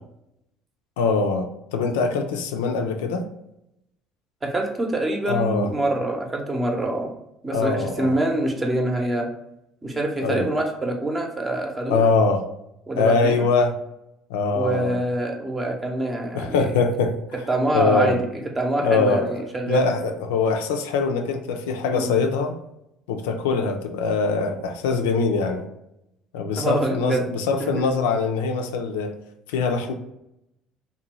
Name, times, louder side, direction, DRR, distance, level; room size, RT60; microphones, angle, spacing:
voice 1, 1.0-3.2 5.3-5.7 7.5-8.2 10.2-10.5 11.9-12.4 13.0-13.8 14.3-15.0 16.3-17.2 17.7-18.2 18.8-22.5 23.1-25.6 26.3-29.1 29.5-29.9, left 4 dB, 80° left, 5 dB, 0.3 m, -23 dB
voice 2, 4.4-7.1 7.4-9.3 9.8-12.1 12.9-13.5 14.5-16.7 17.5-19.9 21.9-22.1 26.6-27.2 27.6-27.7, right 1 dB, 25° right, 2 dB, 0.7 m, -25 dB
2.7 x 2.2 x 3.0 m, 0.83 s
hypercardioid pair, 65°, 0 cm